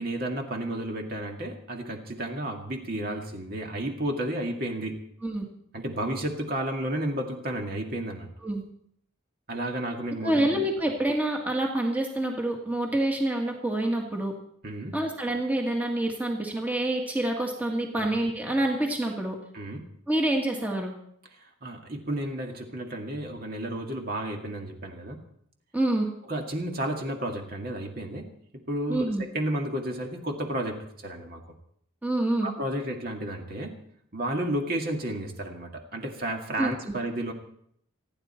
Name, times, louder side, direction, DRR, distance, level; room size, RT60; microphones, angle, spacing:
voice 1, 0.0-5.0 5.7-8.3 9.5-10.5 14.6-15.0 18.0-18.1 19.5-19.9 21.4-25.2 26.3-28.3 28.7-31.4 32.4-33.8 34.1-37.3, right 1 dB, 45° right, 2 dB, 2.2 m, -32 dB
voice 2, 10.2-14.4 14.9-19.4 20.1-20.9 25.7-26.1 28.9-29.2 32.0-32.5 36.6-37.0, right 1 dB, 10° right, 0 dB, 1.7 m, -27 dB
28.5 x 10.0 x 4.4 m, 0.70 s
head